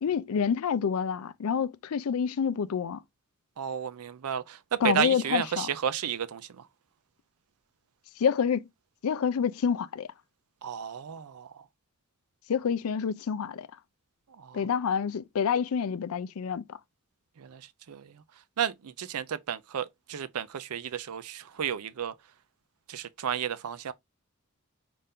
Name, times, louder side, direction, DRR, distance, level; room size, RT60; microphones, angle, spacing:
voice 1, 0.0-3.0 4.8-5.7 8.2-8.6 9.0-10.1 12.5-13.7 14.5-16.8, left 7 dB, 75° left, 0.4 m, -28 dB
voice 2, 3.6-6.7 10.6-11.6 14.3-14.7 17.4-18.2 18.6-22.1 22.9-23.9, right 8 dB, 90° right, 0.5 m, -33 dB
5.5 x 2.6 x 3.5 m
head